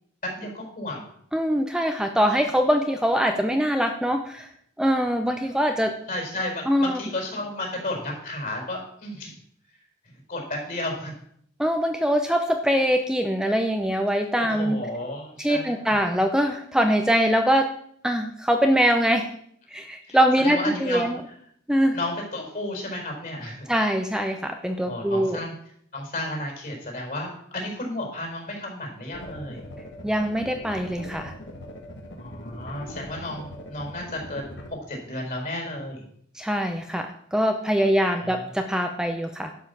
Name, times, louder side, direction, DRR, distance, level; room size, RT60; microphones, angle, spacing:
voice 1, 0.2-1.1 6.1-9.3 10.3-11.1 14.4-15.9 20.1-21.1 21.9-23.7 24.9-25.5 25.9-29.6 32.2-36.0 38.1-38.4, left 1 dB, 45° left, 0 dB, 4.8 m, -33 dB
voice 2, 1.3-4.5 4.8-5.9 6.7-7.0 11.6-14.8 15.4-17.7 18.0-19.3 19.7-21.2 21.7-22.0 23.7-25.4 30.0-31.3 36.3-39.5, equal, 5° right, 5 dB, 0.6 m, -23 dB
sound 1, 29.1-34.7, equal, 60° left, 1.7 m, -41 dB
11.5 x 5.6 x 7.0 m, 0.68 s
head